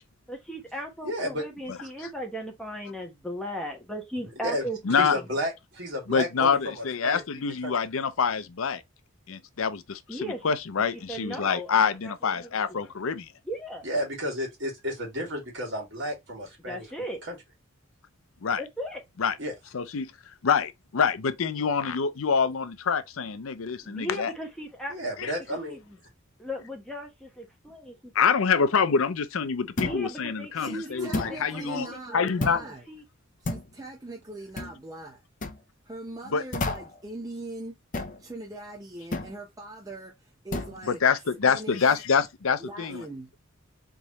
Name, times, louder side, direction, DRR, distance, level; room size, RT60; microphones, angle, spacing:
voice 1, 0.3-4.8 5.1-5.3 10.1-10.5 10.9-12.9 13.4-13.8 16.7-17.2 18.6-19.0 23.8-25.0 25.5-26.0 26.4-28.1 29.8-31.8 32.0-33.0, equal, 5° left, 1.1 m, -37 dB
voice 2, 1.0-1.4 4.4-4.6 5.0-7.2 7.6-7.7 13.8-16.9 17.3-17.4 19.4-19.5 24.9-25.8, equal, 55° right, 2.5 m, -32 dB
voice 3, 4.9-5.2 6.1-8.8 9.3-10.0 10.4-13.3 18.4-18.6 19.2-19.3 19.7-20.1 20.4-24.3 25.2-25.3 28.1-32.6 36.3-36.4 40.9-43.0, left 6 dB, 70° left, 0.5 m, -26 dB
sound 1, 29.8-30.1 31.1-31.4 32.4-32.7 33.4-33.7 34.6-34.8 35.4-35.6 36.5-37.0 37.9-38.2 39.1-39.3 40.5-40.8, left 2 dB, 35° left, 0.7 m, -31 dB
voice 4, 30.6-32.8 33.4-35.2 35.8-37.7 38.2-40.1 40.4-41.0 41.4-42.0 42.6-43.3, right 2 dB, 15° right, 0.8 m, -40 dB
4.0 x 3.6 x 3.0 m
head